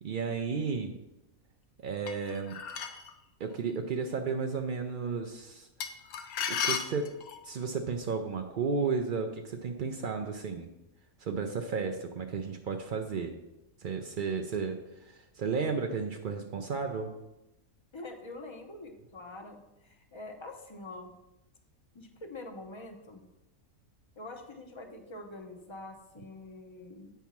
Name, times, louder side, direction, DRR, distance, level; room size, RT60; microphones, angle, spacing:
voice 1, 0.0-1.0 1.8-2.6 3.4-5.7 6.5-7.1 7.4-10.7 11.2-13.3 13.8-17.1, right 5 dB, 85° right, 4 dB, 0.4 m, -33 dB
sound 1, 2.1-3.1 5.8-7.5, left 7 dB, 85° left, 1.1 m, -34 dB
voice 2, 17.9-21.1 21.9-23.2 24.2-27.1, left 2 dB, 30° left, 4 dB, 0.5 m, -45 dB
8.1 x 3.5 x 5.8 m, 0.93 s
omnidirectional pair, 1.5 m